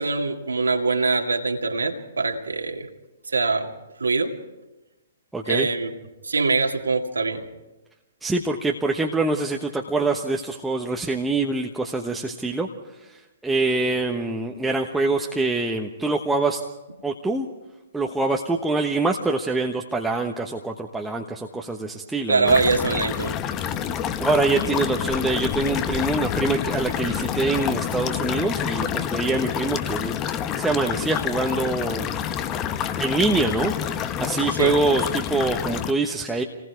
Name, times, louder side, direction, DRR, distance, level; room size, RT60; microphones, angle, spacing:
voice 1, 0.0-2.9 3.3-3.7 4.0-4.4 5.4-5.9 6.2-7.5 22.3-23.4 34.5-34.8, right 4 dB, 70° right, 2 dB, 2.2 m, -23 dB
voice 2, 5.3-5.7 8.2-12.7 13.0-16.6 17.0-17.5 17.9-22.6 24.2-32.1 33.0-36.4, right 3 dB, 5° right, 1 dB, 1.2 m, -25 dB
sound 1, 22.5-35.9, left 9 dB, 20° left, 1.0 m, -28 dB
28.5 x 20.0 x 4.7 m, 1.0 s
figure-of-eight pair, 120°, 0 cm